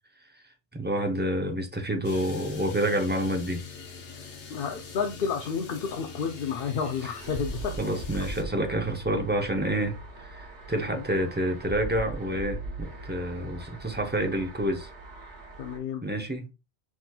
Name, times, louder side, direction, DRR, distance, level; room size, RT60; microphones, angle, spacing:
voice 1, 0.7-3.6 7.0-7.1 7.8-14.9 16.0-16.5, right 1 dB, 15° right, 0.3 m, -28 dB
sound 1, 2.0-8.4, left 5 dB, 75° left, 1.2 m, -44 dB
voice 2, 4.5-7.7 10.9-11.0 15.6-16.0, left 6 dB, 60° left, 0.7 m, -31 dB
sound 2, 7.2-15.8, right 2 dB, 65° right, 1.5 m, -40 dB
5.9 x 2.9 x 2.2 m
omnidirectional pair, 1.2 m